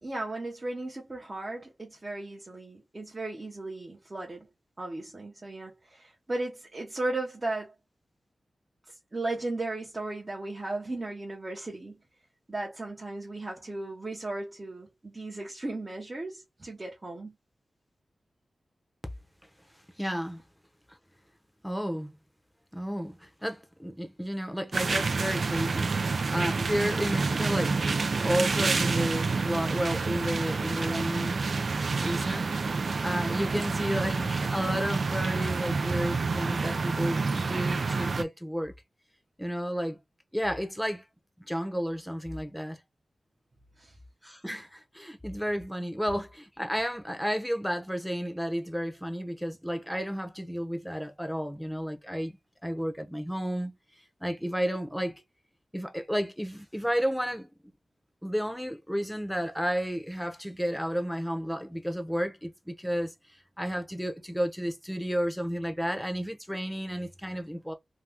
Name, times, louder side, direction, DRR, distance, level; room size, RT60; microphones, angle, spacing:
voice 1, 0.0-4.5 4.8-7.7 8.9-12.0 12.5-17.3 43.8-43.9, right 2 dB, 35° right, 0.9 m, -36 dB
voice 2, 20.0-20.4 21.6-22.1 22.7-31.4 32.0-32.6 33.0-38.7 39.4-40.0 40.3-41.0 41.5-42.8 44.2-52.4 52.6-53.8 54.2-55.2 55.7-57.5 58.2-63.1 63.6-67.7, equal, ahead, 0.8 m, -32 dB
sound 1, 24.7-38.2, right 4 dB, 65° right, 0.4 m, -28 dB
2.9 x 2.3 x 3.4 m
wide cardioid pair, 70°, 0 cm